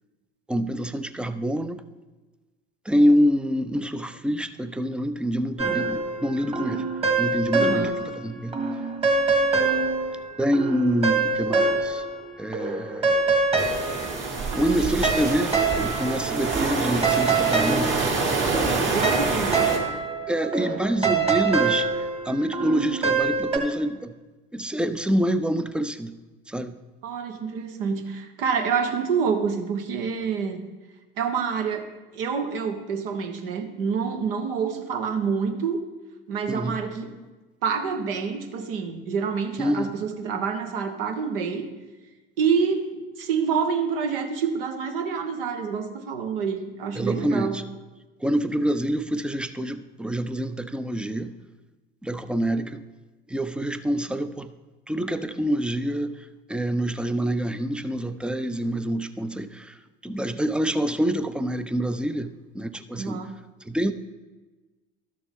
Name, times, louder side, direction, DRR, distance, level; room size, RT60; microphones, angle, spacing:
voice 1, 0.5-1.8 2.9-6.9 7.2-8.6 10.4-12.0 12.4-13.3 14.5-18.0 18.5-19.0 20.3-24.2 24.5-26.2 26.5-26.8 36.5-36.8 39.6-39.9 47.0-47.6 48.2-51.3 52.0-52.8 53.3-54.5 54.9-63.2 63.6-63.9, equal, 5° right, 11 dB, 0.5 m, -26 dB
sound 1, 5.6-8.2 8.5-12.3 12.5-23.6, right 4 dB, 20° right, 1.8 m, -25 dB
voice 2, 7.6-7.9 18.4-19.9 27.0-30.6 31.2-31.9 32.1-35.8 36.3-37.1 37.6-41.7 42.4-47.6 63.0-63.3, right 6 dB, 70° right, 6 dB, 1.2 m, -27 dB
sound 2, 13.6-19.8, right 4 dB, 40° right, 2.2 m, -27 dB
12.0 x 6.8 x 3.6 m, 1.2 s
hypercardioid pair, 70°, 29 cm